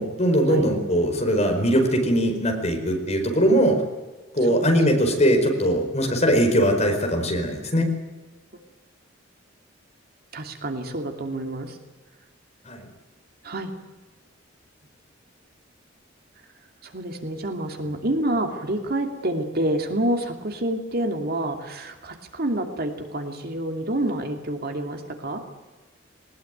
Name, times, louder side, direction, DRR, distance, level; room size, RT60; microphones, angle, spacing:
voice 1, 0.0-3.8 4.3-7.9 12.6-12.9, equal, 35° left, 3 dB, 4.8 m, -21 dB
voice 2, 10.3-11.8 13.4-13.7 16.8-25.4, right 1 dB, 55° right, 4 dB, 2.6 m, -28 dB
20.5 x 19.5 x 9.3 m, 1.2 s
head